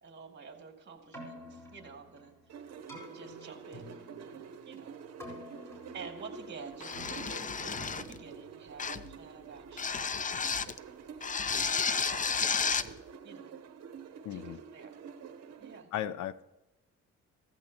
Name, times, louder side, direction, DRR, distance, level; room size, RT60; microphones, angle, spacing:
voice 1, 0.0-2.3 3.1-5.0 5.9-10.6 11.4-13.0 13.2-13.5 14.3-15.0 15.6-15.9, right 5 dB, 35° right, 3 dB, 2.5 m, -50 dB
Keyboard (musical), 1.0-9.1, equal, 10° left, 4.6 m, -50 dB
sound 1, 2.5-15.8, right 6 dB, 55° right, 1.0 m, -48 dB
sound 2, 6.8-8.2 8.8-9.1 9.8-10.8 11.2-12.9, left 6 dB, 25° left, 0.5 m, -32 dB
voice 2, 14.2-14.6 15.9-16.4, left 11 dB, 75° left, 14 dB, 0.7 m, -36 dB
15.5 x 14.5 x 2.9 m, 1.0 s
cardioid pair, 90°, 30 cm